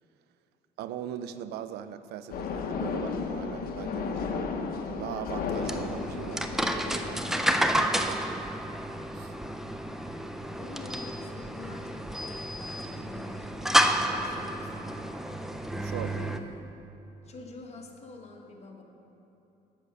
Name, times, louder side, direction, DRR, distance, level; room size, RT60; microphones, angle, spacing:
voice 1, 0.8-8.5 9.1-9.3 15.8-16.2, right 10 dB, 75° right, 12 dB, 0.4 m, -40 dB
sound 1, 2.3-7.6, left 5 dB, 60° left, 0.7 m, -34 dB
sound 2, 5.5-16.4, equal, ahead, 0.4 m, -30 dB
voice 2, 10.6-15.1 15.3-15.5 16.1-16.7 17.2-18.8, left 3 dB, 40° left, 1 dB, 1.1 m, -47 dB
8.2 x 6.5 x 5.5 m, 3.0 s
cardioid pair, 110°, 17 cm